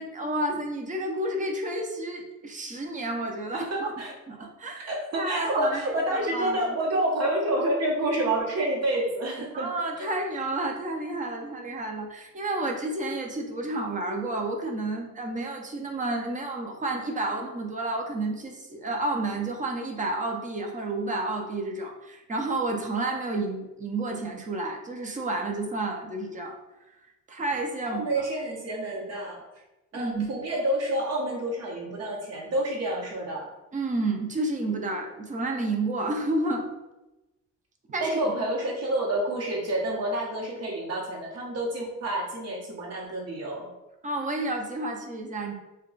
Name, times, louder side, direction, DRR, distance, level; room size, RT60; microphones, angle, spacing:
voice 1, 0.0-3.9 4.3-5.8 6.1-6.7 9.5-26.6 27.3-28.1 29.9-30.3 33.7-36.7 37.9-38.2 44.0-45.5, right 2 dB, 25° right, 2 dB, 0.5 m, -30 dB
voice 2, 3.5-4.1 4.9-9.7 27.9-29.4 29.9-33.5 38.0-43.7, right 1 dB, 55° right, -2 dB, 0.9 m, -28 dB
2.3 x 2.2 x 3.8 m, 1.0 s
cardioid pair, 90°, 30 cm